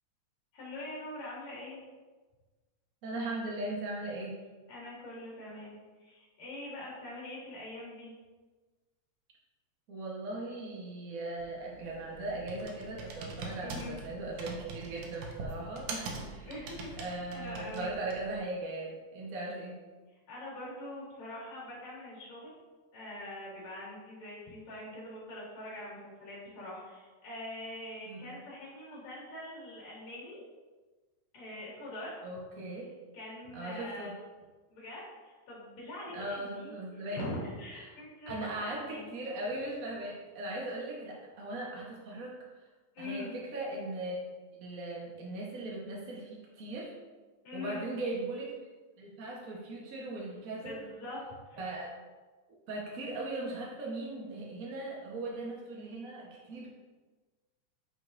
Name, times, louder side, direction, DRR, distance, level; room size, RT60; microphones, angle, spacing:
voice 1, 0.5-1.8 4.7-8.1 13.6-14.0 16.1-18.0 20.3-22.5 22.9-30.4 31.3-32.2 32.6-32.8 33.1-34.1 34.7-36.7 37.1-39.1 42.9-43.4 47.4-47.8 50.6-51.2 51.5-51.6, left 1 dB, 70° left, -5 dB, 3.4 m, -43 dB
voice 2, 3.0-4.4 9.9-16.6 17.0-19.7 28.1-28.4 32.2-32.9 33.5-34.1 36.1-37.3 38.3-42.4 43.0-44.2 44.5-46.9 47.5-48.5 49.0-50.8 51.6-51.9 52.7-56.7, right 2 dB, 60° right, -3 dB, 0.8 m, -38 dB
Computer keyboard, 11.4-18.4, right 3 dB, 85° right, 2.3 m, -43 dB
9.4 x 5.3 x 2.6 m, 1.3 s
omnidirectional pair, 3.3 m